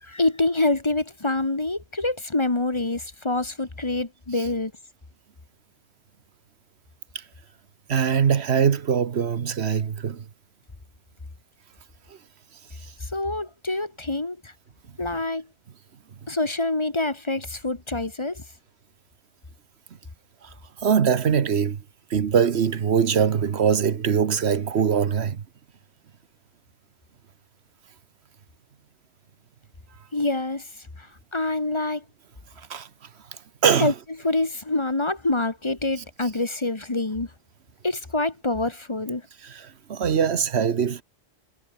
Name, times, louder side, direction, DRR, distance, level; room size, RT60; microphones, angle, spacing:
voice 1, 0.0-4.7 13.0-14.5 15.0-15.5 16.3-18.4 30.1-32.0 33.8-33.9 34.2-37.3 37.8-39.2, left 2 dB, 25° left, 1.4 m, -26 dB
voice 2, 7.9-10.2 12.1-12.2 20.4-20.5 20.8-21.8 22.1-25.4 32.6-32.9 33.6-33.9 39.4-41.0, right 7 dB, 80° right, 1.3 m, -22 dB
omnidirectional pair, 1.1 m